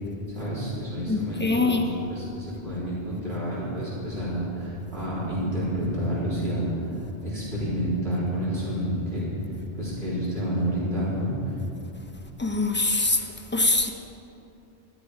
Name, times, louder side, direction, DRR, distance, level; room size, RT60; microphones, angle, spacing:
voice 1, 0.3-9.3 9.7-11.5, equal, 55° right, -9 dB, 4.2 m, -29 dB
voice 2, 1.1-1.8 12.4-13.2 13.5-13.9, left 2 dB, 10° left, 3 dB, 0.7 m, -23 dB
13.0 x 12.5 x 5.0 m, 2.8 s
omnidirectional pair, 1.2 m